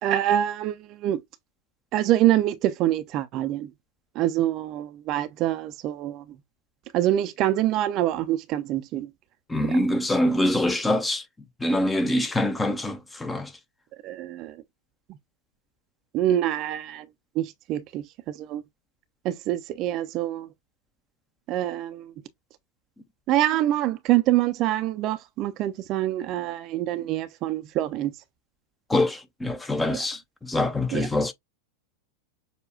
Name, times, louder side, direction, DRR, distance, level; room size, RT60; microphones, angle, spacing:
voice 1, 0.0-1.2 1.9-3.7 4.1-6.2 6.9-9.1 9.6-9.8 14.0-14.6 16.1-17.1 17.3-18.6 19.2-20.5 21.5-22.1 23.3-28.1 29.9-30.1 30.9-31.1, right 13 dB, 35° right, 0.5 m, -25 dB
voice 2, 9.5-11.2 11.6-13.5 28.9-31.3, left 1 dB, 10° left, 0.6 m, -24 dB
6.6 x 2.2 x 2.4 m
figure-of-eight pair, 90°, 0 cm